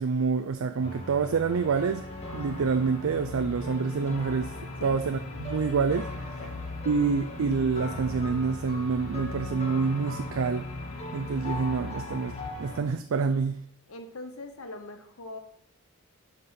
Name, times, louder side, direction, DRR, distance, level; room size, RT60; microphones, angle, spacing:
voice 1, 0.0-2.0 2.3-4.5 4.8-6.4 6.9-10.7 11.1-13.6, right 5 dB, 65° right, 7 dB, 0.4 m, -27 dB
sound 1, 0.8-12.8, left 1 dB, 30° left, 1.6 m, -40 dB
sound 2, 1.5-12.5, left 4 dB, 85° left, 0.6 m, -41 dB
voice 2, 13.9-15.4, left 2 dB, 70° left, 6 dB, 0.9 m, -41 dB
6.7 x 5.4 x 5.7 m, 0.72 s
head